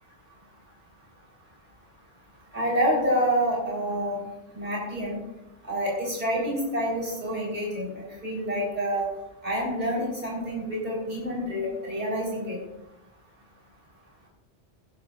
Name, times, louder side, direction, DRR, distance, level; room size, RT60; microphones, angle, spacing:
voice 1, 2.5-4.2 4.5-5.2 5.6-9.1 9.4-12.6, equal, 40° right, -5 dB, 4.3 m, -28 dB
18.0 x 10.0 x 2.5 m, 0.91 s
omnidirectional pair, 1.1 m